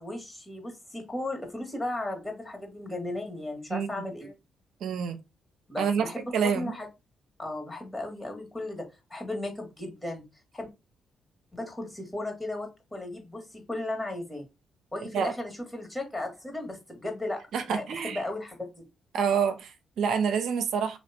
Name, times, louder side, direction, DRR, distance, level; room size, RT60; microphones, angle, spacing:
voice 1, 0.0-4.3 5.7-6.9 7.4-10.2 10.5-10.7 11.5-14.5 14.9-17.4 17.7-18.9, left 2 dB, 20° left, 1.8 m, -35 dB
voice 2, 4.8-5.2 5.8-6.1 6.3-6.8 15.1-15.3 17.5-18.2 19.1-21.0, right 6 dB, 75° right, 0.6 m, -27 dB
3.2 x 2.9 x 4.2 m
supercardioid pair, 50°, 0 cm